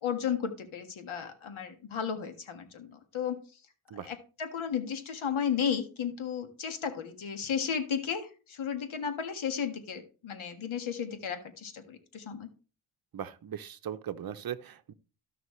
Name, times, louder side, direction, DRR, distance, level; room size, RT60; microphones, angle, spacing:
voice 1, 0.0-3.4 3.9-12.5, left 7 dB, 70° left, 1.7 m, -34 dB
voice 2, 13.1-14.9, right 9 dB, 45° right, 0.8 m, -39 dB
13.5 x 5.9 x 3.2 m
cardioid pair, 65°, 49 cm